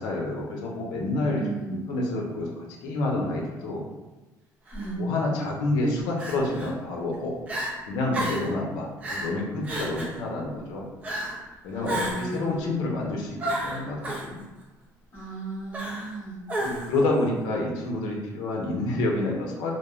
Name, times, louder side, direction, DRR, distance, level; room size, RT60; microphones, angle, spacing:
voice 1, 0.0-3.8 5.0-7.3 7.9-10.9 11.6-14.4 16.6-19.7, left 2 dB, 75° left, -1 dB, 0.6 m, -28 dB
voice 2, 1.3-1.9 4.7-5.2 11.4-12.8 15.1-16.4, right 1 dB, 30° left, -10 dB, 1.3 m, -35 dB
Crying sobbing, 4.7-4.9 6.2-6.7 7.1-7.2 7.5-7.7 8.1-8.5 9.0-9.3 9.6-10.2 11.0-11.4 11.8-12.4 13.4-14.3 15.7-16.2 16.5-17.0, right 1 dB, 20° right, 0.4 m, -31 dB
3.0 x 2.0 x 2.3 m, 1.1 s
cardioid pair, 180°, 7 cm